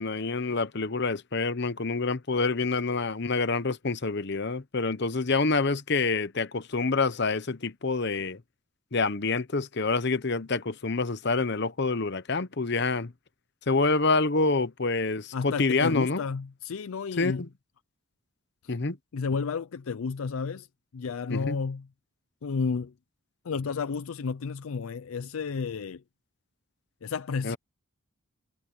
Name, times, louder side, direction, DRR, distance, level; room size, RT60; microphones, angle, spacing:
voice 1, 0.0-8.4 8.9-13.1 13.7-16.2 17.2-17.5 18.7-19.0 21.3-21.5 27.4-27.6, left 3 dB, 50° left, 0.9 m, -27 dB
voice 2, 15.3-17.4 18.6-18.7 19.1-20.7 20.9-21.8 22.4-22.9 23.4-26.0 27.0-27.6, left 5 dB, 75° left, 0.5 m, -31 dB
head